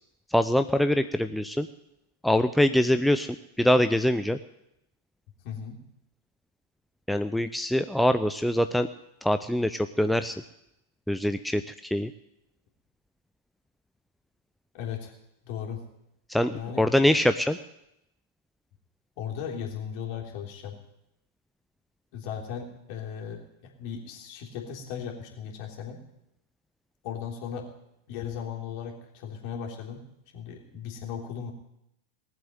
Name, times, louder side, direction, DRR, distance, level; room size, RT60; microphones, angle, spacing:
voice 1, 0.3-1.7 2.2-4.4 7.1-8.9 9.2-10.4 11.1-12.1 16.3-17.6, left 1 dB, ahead, 9 dB, 0.5 m, -24 dB
voice 2, 5.4-5.8 14.7-15.1 15.4-15.8 16.5-16.9 19.2-20.8 22.1-26.0 27.0-27.7 28.1-30.0 30.3-31.5, left 8 dB, 45° left, 0 dB, 3.3 m, -37 dB
19.5 x 7.6 x 9.2 m, 0.84 s
figure-of-eight pair, 90°, 0 cm